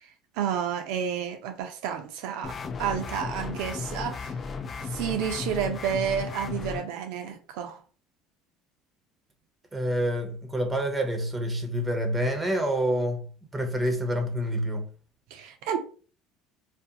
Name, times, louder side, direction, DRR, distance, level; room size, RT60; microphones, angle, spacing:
voice 1, 0.4-4.3 4.8-7.8 15.3-15.8, right 8 dB, 75° right, 0.5 m, -30 dB
sound 1, 2.4-6.8, left 5 dB, 35° left, 0.3 m, -35 dB
voice 2, 9.7-13.3 13.5-14.8, equal, 15° right, 0.7 m, -27 dB
2.5 x 2.1 x 2.6 m
supercardioid pair, 85°, 0 cm